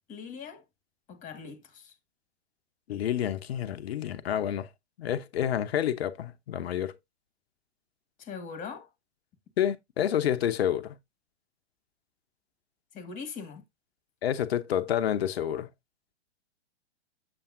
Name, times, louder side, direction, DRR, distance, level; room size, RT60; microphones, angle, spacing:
voice 1, 0.1-0.6 1.1-1.9 8.2-8.9 12.9-13.6, left 5 dB, 20° left, 1.6 m, -41 dB
voice 2, 2.9-4.7 5.0-6.9 9.6-10.9 14.2-15.7, left 10 dB, 60° left, 0.9 m, -29 dB
7.2 x 7.0 x 2.6 m
figure-of-eight pair, 110°, 34 cm